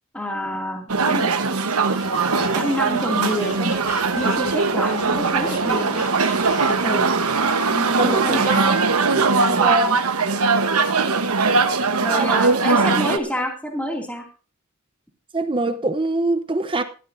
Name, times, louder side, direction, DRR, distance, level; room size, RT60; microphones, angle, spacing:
voice 1, 0.1-1.3 2.3-3.8 4.1-6.1 6.7-7.1 7.7-8.6 9.4-9.6 12.0-14.2, equal, 5° left, 2.4 m, -28 dB
sound 1, 0.9-13.2, right 4 dB, 85° right, 1.1 m, -20 dB
Squeak, 2.0-7.0, left 3 dB, 60° left, 6.6 m, -38 dB
voice 2, 8.0-8.8 9.6-9.9 12.1-12.6 15.3-16.8, right 2 dB, 25° right, 0.7 m, -24 dB
19.0 x 13.5 x 2.7 m
head